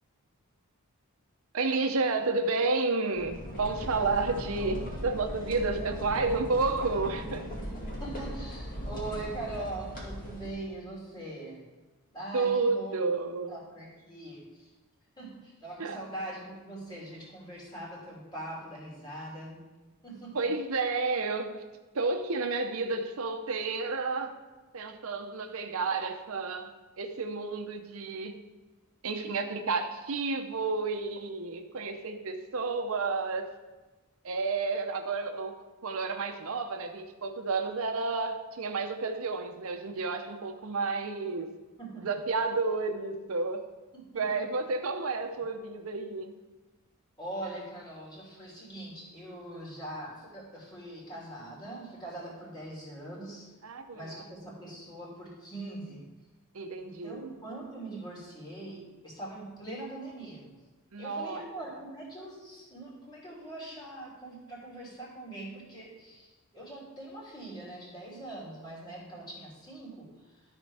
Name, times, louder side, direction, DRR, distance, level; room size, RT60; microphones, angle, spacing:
voice 1, 1.5-7.4 12.3-13.5 15.8-16.0 20.3-21.6 21.9-24.4 24.7-26.7 27.0-28.4 29.0-33.5 34.2-35.5 35.8-41.5 42.0-43.6 44.1-46.3 53.6-54.2 56.5-57.3 60.9-61.4, right 3 dB, 65° right, 5 dB, 0.7 m, -31 dB
sound 1, 3.1-10.5, equal, 40° left, 2.1 m, -38 dB
voice 2, 6.2-6.8 7.6-7.7 8.0-11.7 12.1-12.9 13.5-14.7 15.2-19.7 20.0-20.5 29.3-29.4 41.8-42.1 43.9-44.2 47.2-53.5 53.9-56.0 56.8-60.5 61.0-70.4, right 2 dB, 20° left, -5 dB, 3.2 m, -42 dB
13.0 x 4.4 x 4.7 m, 1.2 s
head